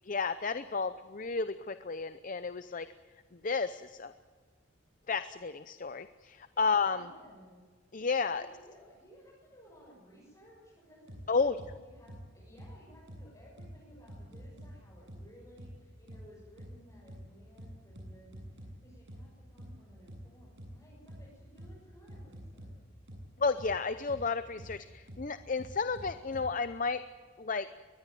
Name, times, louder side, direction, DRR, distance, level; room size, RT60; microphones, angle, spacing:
voice 1, 0.0-2.9 3.3-4.1 5.1-7.1 7.9-8.4 11.3-11.6 23.4-27.0 27.4-27.7, left 4 dB, 40° left, 12 dB, 0.6 m, -32 dB
voice 2, 6.5-7.7 8.2-22.7, equal, 20° left, -6 dB, 7.1 m, -58 dB
sound 1, 11.1-11.2 11.6-11.7 12.1-12.2 12.6-12.7 13.1-13.2 13.6-13.7 14.1-14.7 15.1-15.2 15.6-15.7 16.1-16.2 16.6-16.7 17.1-17.2 17.6-18.7 19.1-19.2 19.6-19.7 20.1-20.2 20.6-20.7 21.1-21.2 21.6-21.7 22.1-22.7 23.1-23.2 23.6-23.7 24.1-24.2 24.6-24.7 25.1-25.2 25.6-26.5, equal, 65° right, 7.7 m, -47 dB
23.0 x 20.5 x 9.2 m, 1.5 s
head